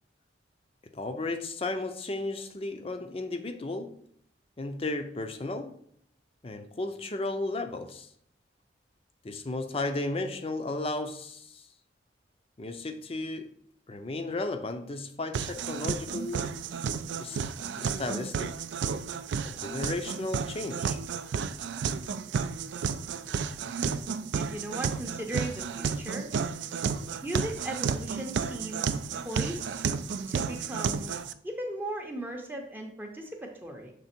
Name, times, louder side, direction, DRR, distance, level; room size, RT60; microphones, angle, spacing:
voice 1, 0.9-3.9 4.6-5.8 6.4-8.1 9.2-11.7 12.6-13.5 13.9-16.4 17.2-17.4 17.7-18.5 19.4-21.0, left 2 dB, 30° left, 0.5 m, -34 dB
sound 1, 15.3-31.3, right 6 dB, 75° right, 0.3 m, -32 dB
voice 2, 24.3-26.3 27.2-29.0 29.2-29.8 30.3-31.1 31.4-33.9, right 1 dB, 10° right, 0.6 m, -37 dB
6.7 x 3.5 x 4.3 m
head